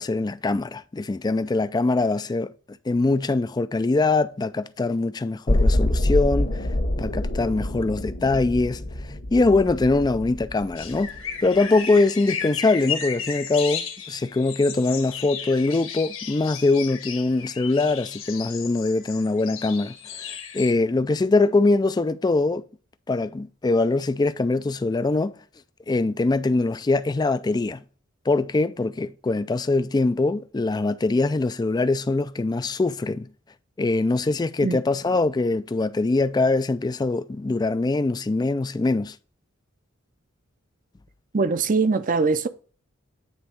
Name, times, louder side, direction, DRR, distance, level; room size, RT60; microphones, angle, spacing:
voice 1, 0.0-6.7 7.0-11.1 11.4-20.3 20.5-22.6 23.1-25.3 25.9-27.8 28.3-33.3 33.8-39.2, left 3 dB, 20° left, 0.3 m, -23 dB
sound 1, 5.5-11.4 11.8-11.9, left 1 dB, 45° left, 1.2 m, -26 dB
sound 2, 10.8-20.7, left 7 dB, 85° left, 1.5 m, -34 dB
voice 2, 41.3-42.5, right 4 dB, 40° right, 0.5 m, -22 dB
9.6 x 3.5 x 4.3 m
head